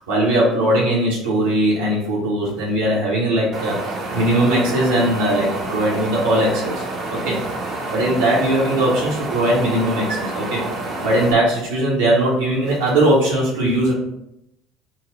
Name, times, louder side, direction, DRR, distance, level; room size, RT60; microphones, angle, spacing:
voice 1, 0.1-7.4 7.9-10.6 11.0-13.9, right 1 dB, 70° right, -6 dB, 0.8 m, -19 dB
Wind, 3.5-11.3, right 2 dB, 40° right, 0.7 m, -28 dB
3.9 x 2.0 x 3.8 m, 0.81 s
figure-of-eight pair, 60°, 0 cm